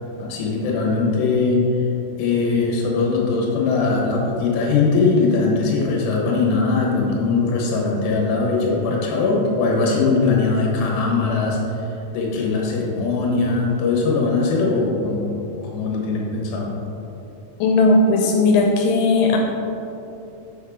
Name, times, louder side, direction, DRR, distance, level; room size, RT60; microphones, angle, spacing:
voice 1, 0.2-1.6 2.2-11.6 12.1-15.3 15.7-16.7, left 4 dB, 70° left, -2 dB, 3.1 m, -20 dB
voice 2, 17.6-19.4, left 3 dB, 85° left, 1 dB, 3.1 m, -16 dB
7.6 x 5.7 x 3.6 m, 2.8 s
omnidirectional pair, 5.7 m